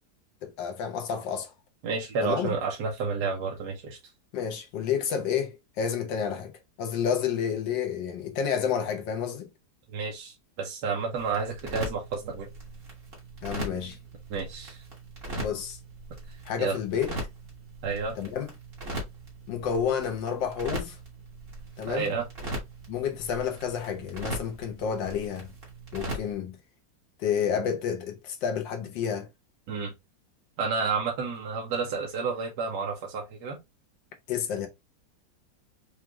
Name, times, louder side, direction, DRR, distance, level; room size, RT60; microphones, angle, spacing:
voice 1, 0.4-1.5 2.2-2.5 4.3-6.5 6.8-9.5 13.4-14.0 15.4-15.8 16.4-17.2 18.1-18.5 19.5-21.0 21.8-22.1 22.9-25.5 25.9-26.6 27.2-29.3 34.3-34.7, left 7 dB, 90° left, 1.5 m, -30 dB
voice 2, 1.8-4.0 9.9-12.5 14.3-14.8 16.6-16.8 17.8-18.2 21.9-22.3 29.7-29.9 30.6-33.6, right 5 dB, 70° right, 1.4 m, -30 dB
sound 1, 11.2-26.3, right 1 dB, 35° right, 1.6 m, -40 dB
4.9 x 2.5 x 2.9 m
omnidirectional pair, 1.9 m